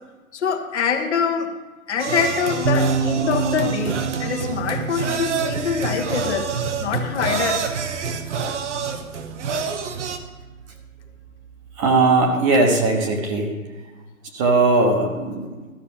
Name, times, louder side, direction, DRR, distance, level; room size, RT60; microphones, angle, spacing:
voice 1, 0.3-1.5 1.9-6.5 6.8-7.6, left 6 dB, 55° left, 3 dB, 1.3 m, -24 dB
sound 1, 2.0-10.2, right 5 dB, 55° right, 1.1 m, -27 dB
sound 2, 2.6-12.1, right 6 dB, 80° right, 1.1 m, -30 dB
voice 2, 11.8-13.5 14.3-15.5, right 3 dB, 20° right, 3 dB, 1.2 m, -19 dB
13.0 x 5.5 x 7.0 m, 1.3 s
hypercardioid pair, 145°, 42 cm